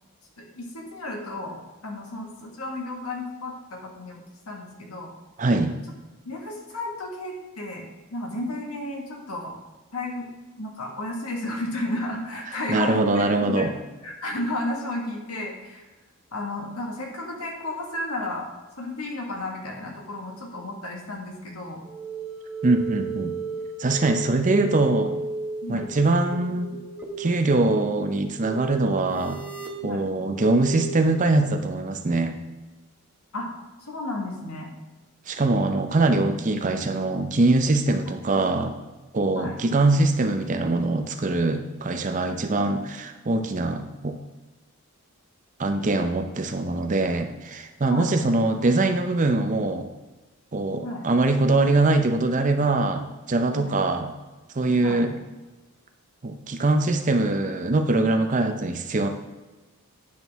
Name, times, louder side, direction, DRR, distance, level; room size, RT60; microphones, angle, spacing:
voice 1, 0.4-5.1 6.3-7.9 8.1-9.5 9.9-10.3 10.6-13.7 14.0-15.9 16.3-18.5 18.8-21.8 25.6-25.9 29.8-30.0 33.3-33.5 33.8-34.7 38.1-38.2 39.3-39.6 47.9-48.1 50.8-51.0 53.5-53.8 54.8-55.0, left 1 dB, 80° left, 0 dB, 1.7 m, -33 dB
voice 2, 5.4-5.7 12.7-13.7 22.6-23.3 23.8-25.1 25.7-26.8 27.2-29.4 29.8-32.4 35.3-38.8 39.1-44.2 45.6-49.9 50.5-54.1 54.5-55.1 56.2-59.1, right 2 dB, 35° right, 6 dB, 0.6 m, -23 dB
sound 1, 21.8-31.0, right 4 dB, 10° right, 0.9 m, -35 dB
9.6 x 6.0 x 3.5 m, 1.2 s
head